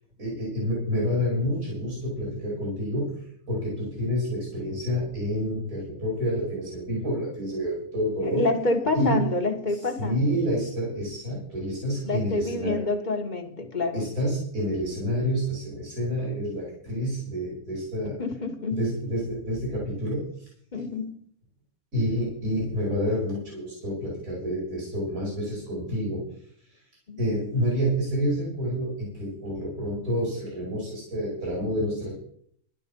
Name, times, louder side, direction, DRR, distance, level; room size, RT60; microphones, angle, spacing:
voice 1, 0.2-8.5 8.9-9.3 9.7-12.8 13.9-18.2 18.8-20.5 21.9-26.3 26.6-26.8 27.2-32.1, equal, 70° right, 5.2 m, -28 dB
voice 2, 8.2-10.2 12.1-14.0 18.2-18.9 20.7-21.2 27.1-27.2, left 3 dB, 30° left, 1.7 m, -27 dB
12.0 x 11.5 x 5.4 m
omnidirectional pair, 1.5 m